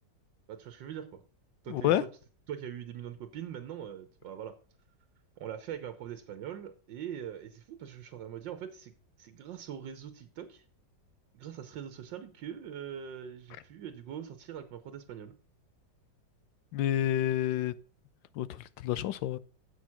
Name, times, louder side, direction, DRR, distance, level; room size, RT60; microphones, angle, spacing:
voice 1, 0.5-1.2 1.6-2.1 2.5-4.5 5.4-8.9 9.2-10.6 11.3-15.3, right 9 dB, 80° right, 1.6 m, -42 dB
voice 2, 1.7-2.0 16.7-17.7 18.4-18.6 18.8-19.4, left 12 dB, 85° left, 1.4 m, -28 dB
8.0 x 6.4 x 5.8 m
omnidirectional pair, 2.0 m